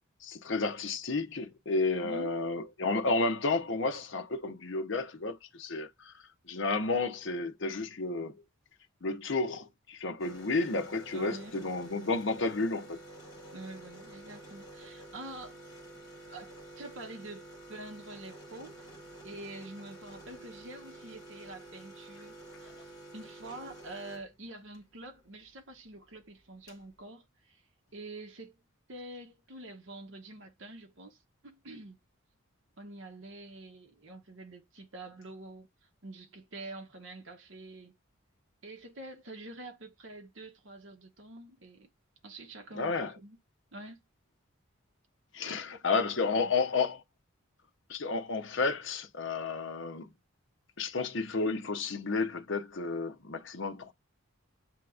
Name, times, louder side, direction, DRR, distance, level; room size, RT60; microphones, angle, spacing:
voice 1, 0.2-6.1 6.5-8.3 9.0-13.0 42.7-43.1 45.3-47.0 47.9-50.1 50.8-53.9, left 3 dB, 60° left, 0.7 m, -31 dB
voice 2, 2.0-2.3 11.1-11.7 13.5-15.6 16.3-18.9 19.2-27.6 27.9-28.6 28.9-32.0 32.8-35.7 36.0-38.0 38.6-41.9 42.2-43.4 43.7-44.0 45.4-46.5, right 2 dB, 65° right, 0.9 m, -47 dB
sound 1, 10.2-24.8 26.1-26.2 26.4-26.9, right 1 dB, 15° left, 1.5 m, -50 dB
7.6 x 2.8 x 2.3 m
head